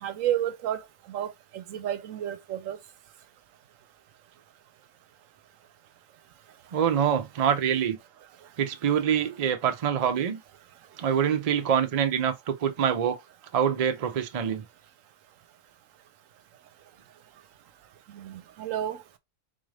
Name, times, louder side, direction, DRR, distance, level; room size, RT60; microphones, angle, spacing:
voice 1, 0.0-2.8 18.1-19.0, right 11 dB, 80° right, 1.0 m, -31 dB
voice 2, 6.7-8.0 8.6-10.4 11.0-13.2 13.5-14.6, right 8 dB, 55° right, 0.4 m, -25 dB
4.2 x 2.5 x 3.2 m
omnidirectional pair, 1.4 m